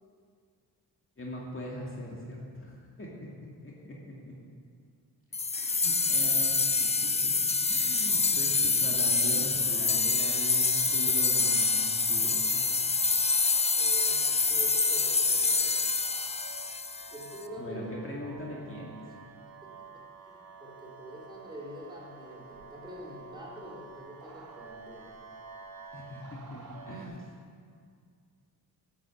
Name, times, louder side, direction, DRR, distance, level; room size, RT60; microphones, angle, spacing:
voice 1, 1.2-3.3 3.6-4.3 5.5-7.3 7.6-12.9 17.6-19.0 25.9-27.3, equal, 30° left, -4 dB, 2.3 m, -41 dB
sound 1, 5.3-17.3, left 4 dB, 15° left, 0.5 m, -26 dB
sound 2, 9.6-27.1, right 4 dB, 65° right, 1.7 m, -50 dB
voice 2, 13.7-15.8 17.1-18.1 18.4-18.5 19.0-19.2 19.5-25.1, equal, 10° right, -4 dB, 3.6 m, -45 dB
11.0 x 8.4 x 7.2 m, 2.1 s
cardioid pair, 90°, 39 cm